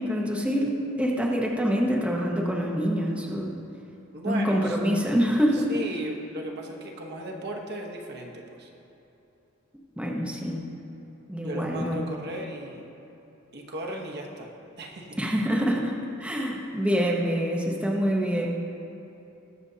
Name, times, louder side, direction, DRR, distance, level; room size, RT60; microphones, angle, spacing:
voice 1, 0.0-3.5 4.2-5.7 10.0-10.6 11.3-12.1 15.2-15.9 16.2-18.5, equal, 5° right, -2 dB, 0.9 m, -26 dB
voice 2, 4.1-4.8 5.5-8.7 11.4-12.9 13.5-15.2, right 1 dB, 55° right, 0 dB, 1.0 m, -36 dB
20.0 x 6.8 x 2.8 m, 2.9 s
head